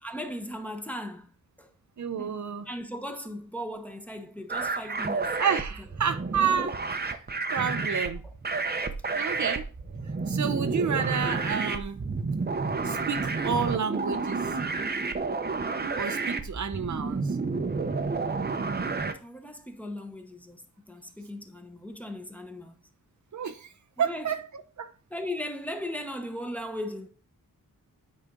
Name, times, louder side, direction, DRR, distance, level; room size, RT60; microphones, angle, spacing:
voice 1, 0.0-1.3 1.6-1.7 2.2-5.3 8.2-8.3 9.3-9.4 18.9-22.7 24.0-24.4 25.1-27.1, left 1 dB, 5° left, 1.0 m, -38 dB
voice 2, 2.0-2.6 5.4-7.2 7.5-8.2 9.1-9.7 10.3-12.0 12.8-14.5 16.0-17.4 23.3-23.7 24.0-24.4 24.8-24.9, right 7 dB, 60° right, 0.6 m, -30 dB
sound 1, 4.5-19.1, right 4 dB, 30° right, 0.8 m, -30 dB
9.2 x 4.3 x 3.8 m
wide cardioid pair, 105°, 34 cm